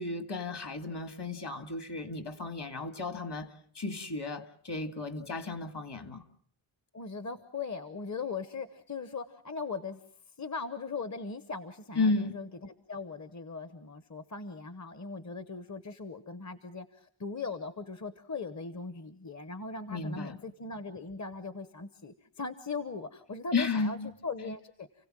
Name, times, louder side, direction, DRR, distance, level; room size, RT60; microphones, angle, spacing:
voice 1, 0.0-3.5 3.8-6.2 12.0-12.4 19.9-20.4 23.5-24.1, left 3 dB, 55° left, 2.1 m, -33 dB
voice 2, 6.9-10.0 10.4-24.9, left 4 dB, 35° left, 1.0 m, -39 dB
29.5 x 16.5 x 7.5 m
wide cardioid pair, 115°, 49 cm